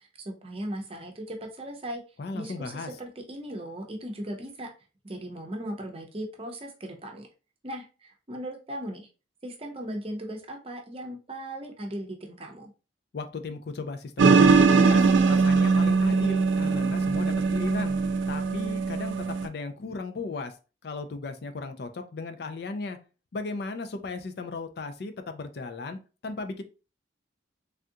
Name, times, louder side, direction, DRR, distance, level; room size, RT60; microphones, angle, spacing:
voice 1, 0.0-2.0 2.3-4.7 5.0-7.3 7.6-9.1 9.4-12.7, right 1 dB, 30° right, 2 dB, 0.6 m, -37 dB
voice 2, 2.2-2.9 13.1-17.9 18.3-20.6 20.8-23.0 23.3-26.6, left 3 dB, 55° left, 8 dB, 0.4 m, -36 dB
sound 1, 14.2-19.5, right 4 dB, 80° right, 0.4 m, -21 dB
3.4 x 2.4 x 2.7 m, 0.32 s
head